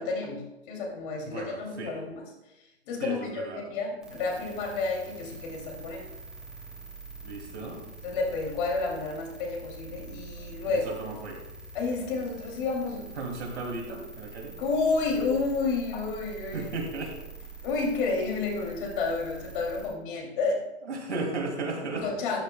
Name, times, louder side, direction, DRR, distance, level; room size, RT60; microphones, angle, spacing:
voice 1, 0.0-2.2 2.9-6.1 8.0-10.9 11.7-13.1 14.6-16.7 17.6-20.6 21.9-22.4, left 3 dB, 45° left, 0 dB, 2.7 m, -30 dB
voice 2, 1.2-1.9 3.0-3.6 7.2-7.8 10.6-11.4 13.2-14.5 16.5-17.1 20.9-22.0, right 3 dB, 75° right, 1 dB, 2.6 m, -35 dB
sound 1, 4.0-19.9, right 3 dB, ahead, 2.5 m, -45 dB
13.0 x 10.0 x 2.2 m, 1.0 s
hypercardioid pair, 120°, 34 cm